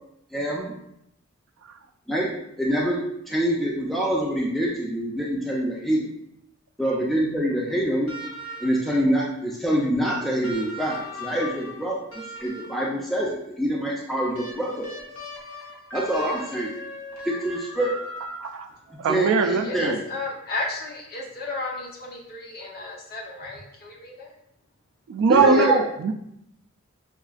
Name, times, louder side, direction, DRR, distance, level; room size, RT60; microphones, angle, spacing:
voice 1, 0.3-0.7 2.1-3.0 3.3-6.0 6.8-8.1 8.6-11.9 12.4-14.9 15.9-16.7 17.3-17.9 19.1-20.0 25.3-25.8, equal, ahead, -4 dB, 0.4 m, -25 dB
sound 1, 8.1-9.0 10.4-13.0 14.3-18.8 20.2-20.3, equal, 85° left, 0.9 m, -39 dB
Piano, 15.9-18.0, right 1 dB, 65° left, 1.2 m, -45 dB
voice 2, 19.0-19.9 25.1-26.1, right 4 dB, 65° right, 8 dB, 0.3 m, -21 dB
voice 3, 19.6-24.3, left 2 dB, 45° left, -3 dB, 0.8 m, -33 dB
5.7 x 2.3 x 2.4 m, 0.79 s
head